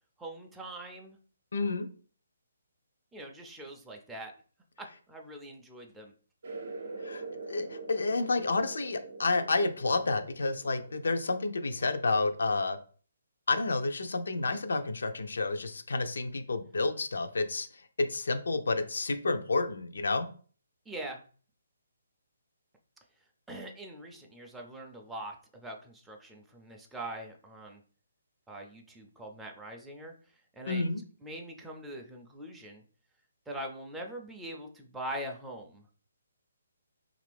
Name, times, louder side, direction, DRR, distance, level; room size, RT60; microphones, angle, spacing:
voice 1, 0.2-1.2 3.1-4.3 4.8-6.1 20.9-21.2 23.5-27.8 28.5-30.1 30.6-30.8 31.2-32.8 33.5-35.8, right 1 dB, 5° right, 0 dB, 0.4 m, -42 dB
voice 2, 1.5-1.9 7.0-7.2 7.5-12.8 13.5-17.7 18.0-20.3 30.7-31.0, left 3 dB, 80° left, 8 dB, 0.5 m, -30 dB
sound 1, 6.4-12.6, right 3 dB, 65° right, 0.6 m, -44 dB
2.8 x 2.5 x 3.3 m, 0.42 s
hypercardioid pair, 160°, 0 cm